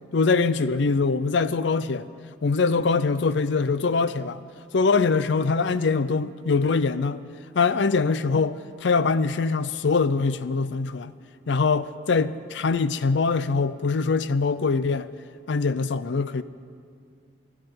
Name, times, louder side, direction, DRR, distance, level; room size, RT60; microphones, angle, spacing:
voice 1, 0.1-2.1 2.4-4.4 4.7-7.2 7.5-11.1 11.5-15.1 15.5-16.4, left 4 dB, 65° left, 0.5 m, -23 dB
12.5 x 12.0 x 9.5 m
head